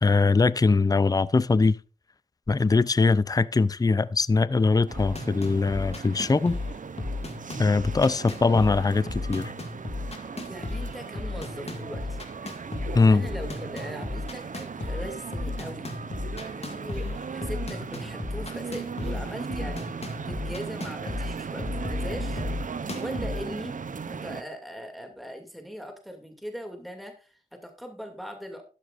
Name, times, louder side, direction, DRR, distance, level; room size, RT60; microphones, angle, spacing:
voice 1, 0.0-1.8 2.5-6.6 7.6-9.5 12.9-13.2, left 4 dB, 25° left, 0.5 m, -22 dB
sound 1, 4.9-23.4, left 3 dB, 40° left, 2.1 m, -35 dB
sound 2, 4.9-24.4, right 5 dB, 60° right, 0.7 m, -37 dB
voice 2, 10.5-12.2 13.1-16.0 16.4-22.4 23.0-23.8 24.1-28.6, equal, ahead, 2.5 m, -40 dB
13.0 x 10.5 x 2.5 m
cardioid pair, 45°, 15 cm